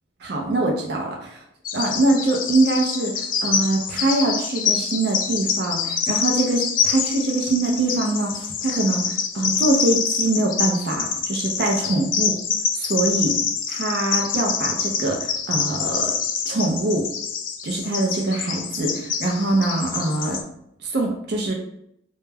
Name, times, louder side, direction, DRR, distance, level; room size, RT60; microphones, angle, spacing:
voice 1, 0.2-1.4 1.7-9.0 9.3-12.3 12.7-13.4 13.7-16.1 16.5-17.1 17.6-20.4 20.8-21.5, right 2 dB, 65° right, 0 dB, 0.4 m, -23 dB
Bird vocalization bird call bird song, 1.6-20.4, left 6 dB, 50° left, 0.3 m, -26 dB
2.2 x 2.1 x 3.2 m, 0.76 s
head